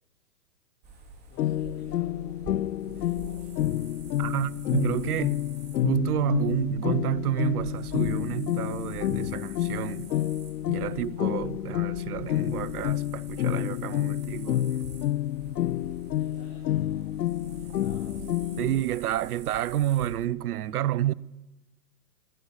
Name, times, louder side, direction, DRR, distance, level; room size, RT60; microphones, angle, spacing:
voice 1, 0.8-3.9 10.9-11.1 16.1-19.4, left 5 dB, 40° left, 4.6 m, -53 dB
sound 1, 0.8-20.3, right 3 dB, 20° right, 2.9 m, -46 dB
sound 2, 1.4-18.8, left 13 dB, 85° left, 0.6 m, -29 dB
voice 2, 4.2-5.4 5.8-10.1 10.7-14.6 18.6-21.1, right 13 dB, 65° right, 0.7 m, -29 dB
17.0 x 9.6 x 8.6 m
hypercardioid pair, 140°, 48 cm